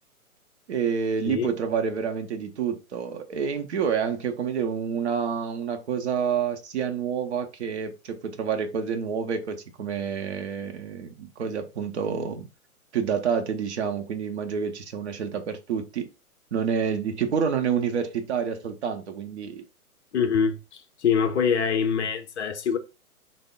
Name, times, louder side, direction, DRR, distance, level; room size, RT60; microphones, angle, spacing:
voice 1, 0.7-12.5 12.9-16.1 16.5-19.7, right 7 dB, 50° right, 0.6 m, -28 dB
voice 2, 20.1-20.6 21.0-22.8, left 6 dB, 50° left, 0.5 m, -24 dB
3.5 x 2.1 x 3.5 m
figure-of-eight pair, 120°, 44 cm